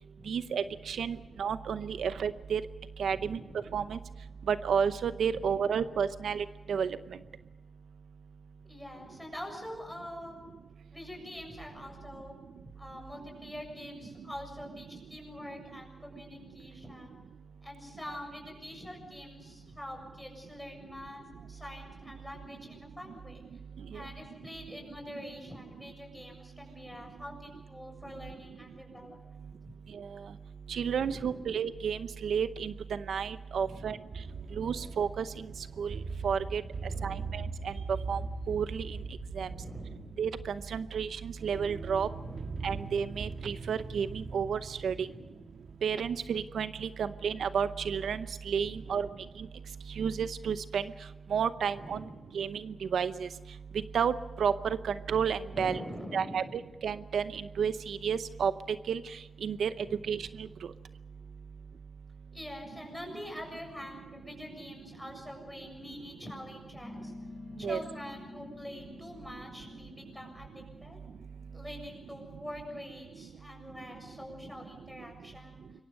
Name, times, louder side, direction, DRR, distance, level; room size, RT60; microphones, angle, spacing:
voice 1, 0.3-2.6 3.0-3.4 3.7-4.0 4.5-7.0 23.9-24.0 29.9-30.1 30.7-34.0 34.5-35.3 35.8-36.6 37.0-37.7 38.1-38.2 38.5-39.0 39.3-39.5 40.2-42.1 42.6-45.1 45.8-49.1 49.4-49.5 50.0-50.8 51.3-52.0 52.3-53.3 53.9-55.8 56.1-58.5 58.9-59.7 60.1-60.5 67.6-67.8, right 7 dB, 85° right, 12 dB, 0.7 m, -31 dB
voice 2, 3.1-3.7 5.3-5.5 8.6-10.4 10.9-12.4 12.8-17.2 17.6-23.4 23.9-29.4 30.9-31.5 33.6-34.0 36.6-37.4 39.4-40.2 42.1-42.7 44.9-45.5 48.6-49.2 51.7-52.2 55.5-56.6 59.9-60.0 62.3-67.1 67.6-71.0 71.5-75.6, left 1 dB, 5° left, 2 dB, 7.3 m, -45 dB
sound 1, 34.1-46.5, right 4 dB, 70° right, 1.8 m, -41 dB
sound 2, 66.8-71.7, left 2 dB, 25° right, 5.5 m, -49 dB
26.5 x 23.0 x 5.4 m, 1.2 s
wide cardioid pair, 105°, 0 cm